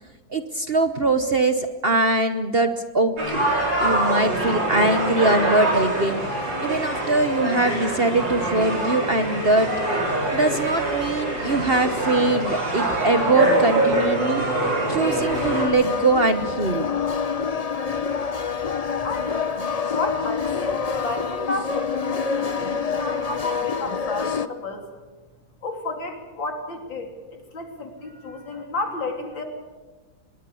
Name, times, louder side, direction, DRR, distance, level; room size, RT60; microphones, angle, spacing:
voice 1, 0.3-3.4 3.8-6.2 6.6-9.7 10.3-14.4 14.9-16.9, right 2 dB, 40° right, 8 dB, 1.0 m, -22 dB
sound 1, 3.2-15.6, right 2 dB, 70° right, 6.7 m, -24 dB
sound 2, 15.0-24.5, left 6 dB, 65° left, 0.3 m, -27 dB
voice 2, 19.0-19.6 19.9-24.9 25.6-29.4, left 2 dB, 80° left, 3 dB, 4.0 m, -32 dB
25.0 x 21.0 x 7.1 m, 1.2 s
omnidirectional pair, 2.0 m